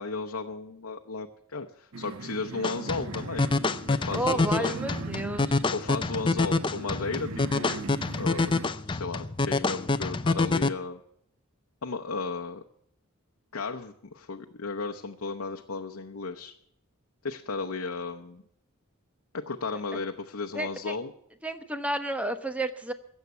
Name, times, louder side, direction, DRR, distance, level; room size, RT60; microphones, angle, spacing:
voice 1, 0.0-3.5 3.9-4.7 5.7-7.9 8.2-8.6 8.9-11.0 11.8-12.6 13.5-16.5 17.2-18.4 19.3-21.1, left 4 dB, 75° left, 4 dB, 0.8 m, -34 dB
sound 1, 1.9-8.7, right 4 dB, 70° right, 0.6 m, -41 dB
sound 2, 2.6-10.7, left 3 dB, 20° left, 0.5 m, -27 dB
voice 2, 4.1-5.6 20.5-21.0 21.4-22.9, right 1 dB, 5° right, 9 dB, 0.9 m, -31 dB
16.5 x 7.3 x 8.1 m, 0.73 s
head